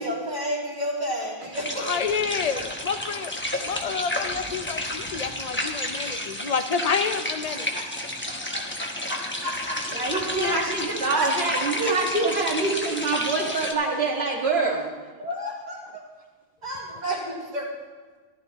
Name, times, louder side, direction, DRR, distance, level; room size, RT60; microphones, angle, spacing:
voice 1, 0.0-1.9 7.5-7.9 8.3-10.2 10.5-10.6 11.1-11.9 15.2-16.0 16.6-17.7, equal, 40° right, -5 dB, 3.1 m, -32 dB
sound 1, 1.5-13.7, left 1 dB, 10° left, 1.0 m, -31 dB
voice 2, 1.8-3.3 3.6-7.7 10.4-10.6, left 6 dB, 45° left, 9 dB, 0.6 m, -29 dB
voice 3, 9.9-14.9, right 3 dB, 75° right, -1 dB, 2.1 m, -25 dB
14.5 x 13.0 x 3.0 m, 1.4 s
omnidirectional pair, 1.1 m